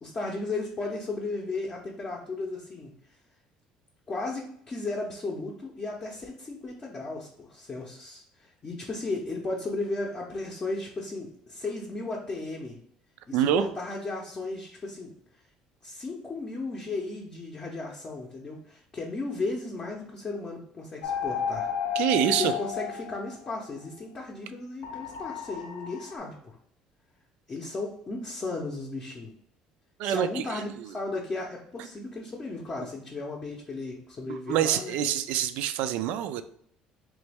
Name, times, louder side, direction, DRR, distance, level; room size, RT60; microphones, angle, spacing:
voice 1, 0.0-2.9 4.1-12.8 13.3-15.1 15.8-21.7 22.2-26.5 27.5-29.3 30.0-35.0, left 3 dB, 25° left, -2 dB, 0.6 m, -35 dB
voice 2, 13.3-13.6 22.0-22.5 30.0-30.9 34.3-36.4, right 11 dB, 75° right, 11 dB, 0.3 m, -26 dB
sound 1, 21.0-23.6 24.8-26.2, left 7 dB, 75° left, 0.5 m, -32 dB
3.2 x 3.0 x 3.4 m, 0.66 s
cardioid pair, 150°, 2 cm